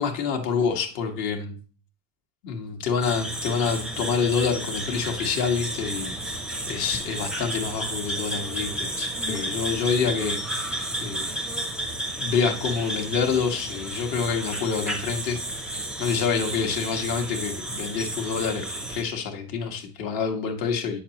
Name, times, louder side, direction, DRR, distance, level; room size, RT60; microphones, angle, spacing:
voice 1, 0.0-1.6 2.4-6.4 6.7-11.2 12.2-15.7 16.0-21.0, left 6 dB, 50° left, 4 dB, 1.5 m, -27 dB
sound 1, 3.0-19.0, right 1 dB, ahead, 0.6 m, -32 dB
8.8 x 6.5 x 2.9 m, 0.39 s
cardioid pair, 165°, 46 cm